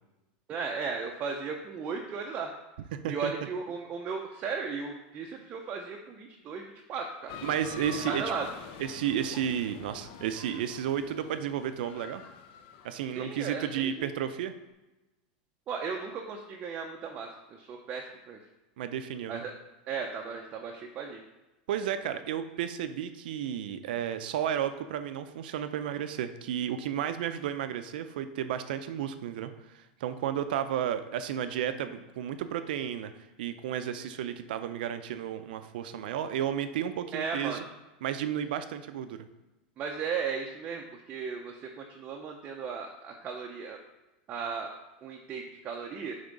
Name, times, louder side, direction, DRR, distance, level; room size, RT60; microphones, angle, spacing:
voice 1, 0.5-2.5 3.1-7.4 8.1-8.4 13.1-14.1 15.7-18.4 19.3-19.5 19.9-21.2 37.1-37.6 39.8-43.8 44.3-44.7 45.0-46.1, right 5 dB, 30° right, 1 dB, 0.6 m, -36 dB
sound 1, 7.3-13.4, left 7 dB, 50° left, 0.6 m, -45 dB
voice 2, 7.4-8.2 8.8-12.2 12.8-14.5 18.8-19.4 21.7-33.1 33.4-37.6 38.0-39.3, right 9 dB, 75° right, 10 dB, 0.5 m, -32 dB
6.8 x 3.6 x 5.3 m, 1.0 s
supercardioid pair, 145°, 5 cm